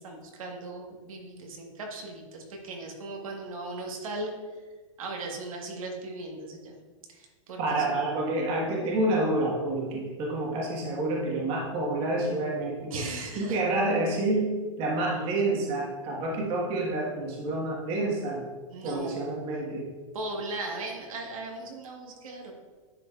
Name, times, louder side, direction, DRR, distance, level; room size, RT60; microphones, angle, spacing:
voice 1, 0.0-4.3 5.0-6.7 7.1-8.0 12.9-13.6 18.7-19.2 20.1-22.5, right 2 dB, 90° right, 1 dB, 1.5 m, -38 dB
voice 2, 7.6-13.1 13.3-14.5 14.8-18.4 18.8-19.9, right 2 dB, 30° right, -2 dB, 1.5 m, -28 dB
10.5 x 5.1 x 2.5 m, 1.4 s
supercardioid pair, 155°, 17 cm